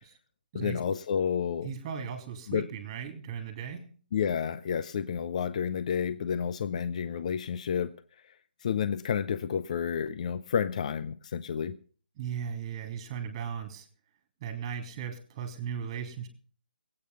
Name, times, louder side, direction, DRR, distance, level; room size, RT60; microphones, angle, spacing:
voice 1, 0.5-1.7 2.5-2.7 4.1-7.9 8.6-11.8, left 7 dB, 45° left, 13 dB, 0.6 m, -30 dB
voice 2, 1.6-3.9 12.2-13.9 14.4-16.3, right 7 dB, 30° right, 6 dB, 3.0 m, -37 dB
20.0 x 8.9 x 5.5 m, 0.42 s
figure-of-eight pair, 145°, 5 cm